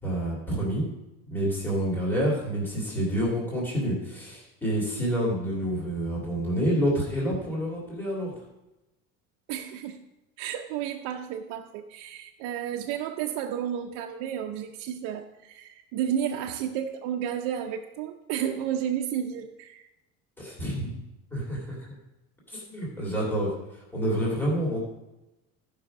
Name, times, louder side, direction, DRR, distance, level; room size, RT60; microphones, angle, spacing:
voice 1, 0.0-0.8 1.3-8.3 20.4-20.9 21.3-21.8 22.5-23.5 23.9-24.8, equal, 5° left, -5 dB, 2.5 m, -28 dB
voice 2, 9.5-10.1 10.4-19.9, right 9 dB, 75° right, 2 dB, 0.8 m, -32 dB
14.0 x 5.7 x 5.0 m, 0.97 s
cardioid pair, 175°, 30 cm